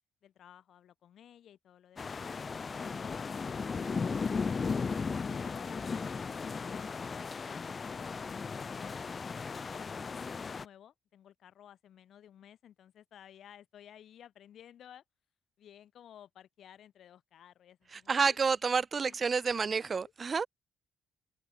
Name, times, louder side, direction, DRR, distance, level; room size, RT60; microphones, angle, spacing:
voice 1, 0.2-2.3 2.7-8.9 9.4-15.0 15.6-18.4 19.0-19.2 19.8-20.1, left 10 dB, 70° left, 3.3 m, -55 dB
sound 1, 2.0-10.6, left 5 dB, 35° left, 0.4 m, -36 dB
voice 2, 17.9-20.5, right 5 dB, 40° right, 1.0 m, -29 dB
cardioid pair, 90°, 0 cm